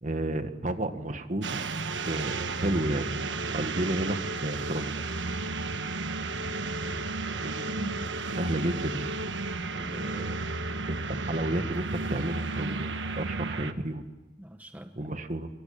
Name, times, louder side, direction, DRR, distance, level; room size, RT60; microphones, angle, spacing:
voice 1, 0.0-1.6 2.1-3.1 3.5-5.1 7.4-7.7 8.4-9.1 10.9-14.0 15.0-15.5, right 1 dB, 45° right, 8 dB, 1.7 m, -31 dB
sound 1, 1.4-13.7, right 3 dB, 90° right, 1.3 m, -33 dB
voice 2, 7.7-8.2 9.7-10.6 14.4-15.1, equal, 10° right, 7 dB, 1.0 m, -43 dB
24.5 x 23.5 x 8.8 m, 1.2 s
head